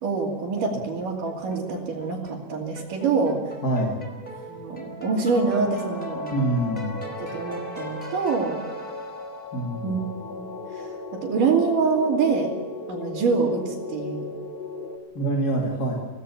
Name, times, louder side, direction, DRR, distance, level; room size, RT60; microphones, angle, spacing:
voice 1, 0.0-3.4 4.5-6.4 7.2-8.6 9.8-10.0 10.4-12.5 12.9-14.3, right 4 dB, 80° right, -4 dB, 4.3 m, -25 dB
sound 1, 0.8-9.6, right 1 dB, 10° left, 4.7 m, -40 dB
voice 2, 3.6-4.0 6.3-7.0 9.5-9.9 15.1-16.0, right 1 dB, 30° left, -1 dB, 2.8 m, -25 dB
sound 2, 5.3-15.0, left 4 dB, 55° left, 3.1 m, -36 dB
27.0 x 18.0 x 7.1 m, 1.4 s
omnidirectional pair, 3.7 m